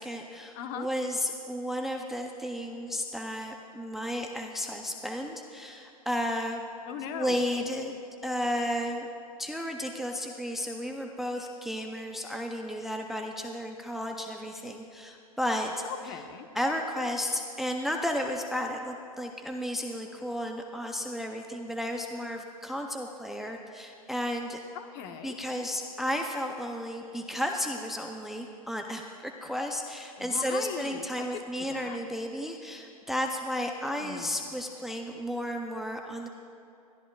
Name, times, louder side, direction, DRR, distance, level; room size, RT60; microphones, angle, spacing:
voice 1, 0.0-6.7 7.1-9.1 9.4-15.7 16.5-24.6 25.2-36.3, equal, ahead, 3 dB, 0.5 m, -33 dB
voice 2, 0.5-0.9 6.9-7.4 15.8-16.5 24.7-25.4 30.2-32.0 33.9-34.5, left 8 dB, 45° left, 7 dB, 1.0 m, -39 dB
21.0 x 13.0 x 2.3 m, 2.8 s
hypercardioid pair, 125°, 19 cm